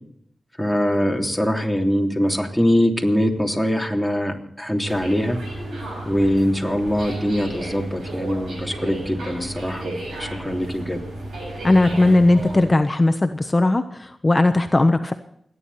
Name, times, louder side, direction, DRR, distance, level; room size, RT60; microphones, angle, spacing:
voice 1, 0.6-5.4 6.0-11.0, equal, ahead, 2 dB, 3.3 m, -22 dB
sound 1, 4.8-12.7, right 1 dB, 90° right, 7.2 m, -33 dB
voice 2, 11.6-15.1, left 2 dB, 30° left, 8 dB, 1.1 m, -18 dB
29.0 x 10.5 x 4.3 m, 0.68 s
cardioid pair, 60°, 0 cm